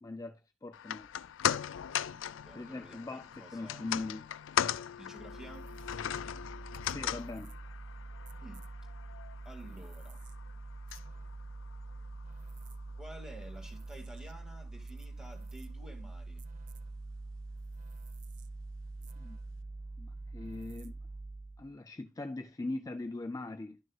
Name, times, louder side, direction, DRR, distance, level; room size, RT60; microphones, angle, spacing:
voice 1, 0.0-1.1 2.5-4.3 6.9-7.6 19.2-19.4 20.0-20.9 21.6-23.8, left 2 dB, 20° left, 0.4 m, -41 dB
sound 1, 0.7-13.1 13.4-13.5, left 9 dB, 85° left, 0.4 m, -38 dB
voice 2, 2.4-3.8 5.0-5.7 8.4-8.6 9.4-10.2 13.0-16.4, right 1 dB, 5° right, 2.1 m, -51 dB
sound 2, 5.2-21.7, right 2 dB, 45° right, 0.6 m, -45 dB
12.0 x 6.3 x 2.3 m
head